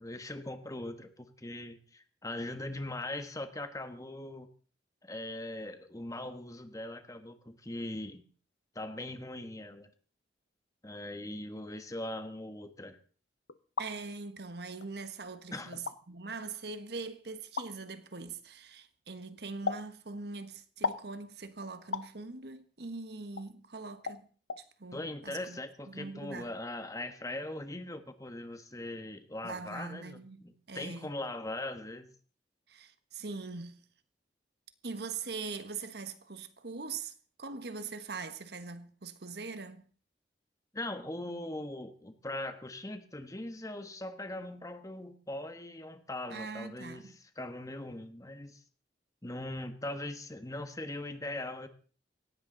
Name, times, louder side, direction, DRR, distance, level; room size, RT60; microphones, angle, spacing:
voice 1, 0.0-4.5 5.0-8.3 8.7-9.9 10.8-13.0 15.5-15.7 24.9-32.1 40.7-48.6 49.2-51.7, left 1 dB, 20° left, 1.4 m, -40 dB
sound 1, 13.5-13.9 14.8-14.9 15.7-16.0 17.6-17.7 19.7-19.9 20.8-21.1 21.9-22.1 23.4-23.5 24.1-24.2 24.5-24.6, left 5 dB, 80° left, 0.9 m, -34 dB
voice 2, 13.8-24.3 24.8-25.6 25.9-26.5 29.4-31.1 32.7-33.9 34.8-37.1 37.4-39.8 46.3-47.1, right 4 dB, 65° right, 1.4 m, -42 dB
18.0 x 16.0 x 4.0 m
head